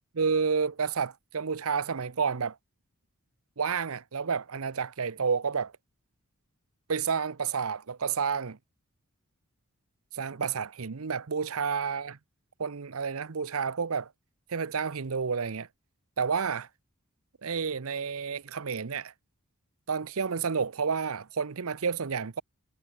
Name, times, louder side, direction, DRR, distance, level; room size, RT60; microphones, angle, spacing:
voice 1, 0.2-2.6 3.6-5.7 6.9-8.6 10.1-12.2 12.6-14.1 14.5-15.7 16.2-16.7 17.4-19.1 19.9-22.4, right 5 dB, 70° right, 0.7 m, -30 dB
head